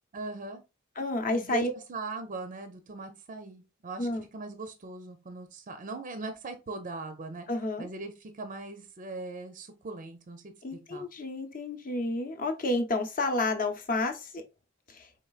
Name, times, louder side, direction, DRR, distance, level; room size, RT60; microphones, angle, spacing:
voice 1, 0.1-0.6 1.3-7.5 7.8-10.5 10.9-11.0, right 3 dB, 40° right, 0.5 m, -40 dB
voice 2, 1.0-1.7 4.0-4.3 7.5-7.9 10.6-14.4 14.9-15.1, left 2 dB, 45° left, 0.7 m, -30 dB
4.4 x 3.1 x 2.3 m
head